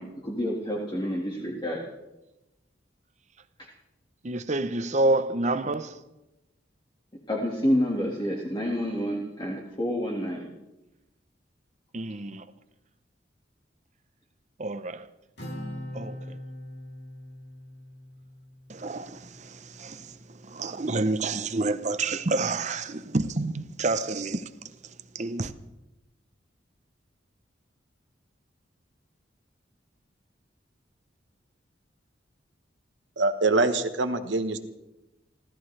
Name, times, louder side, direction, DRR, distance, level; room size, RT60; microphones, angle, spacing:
voice 1, 0.0-1.8 3.6-3.7 7.3-10.5, equal, 25° left, 1.9 m, -29 dB
voice 2, 4.2-6.0 11.9-12.4 14.6-15.1 15.9-16.4 18.7-24.5 25.1-25.5, right 2 dB, 40° right, 0.8 m, -29 dB
Acoustic guitar, 15.4-19.0, left 1 dB, 65° left, 3.0 m, -41 dB
voice 3, 33.2-34.6, right 2 dB, 80° right, 1.2 m, -24 dB
29.5 x 13.5 x 3.3 m
head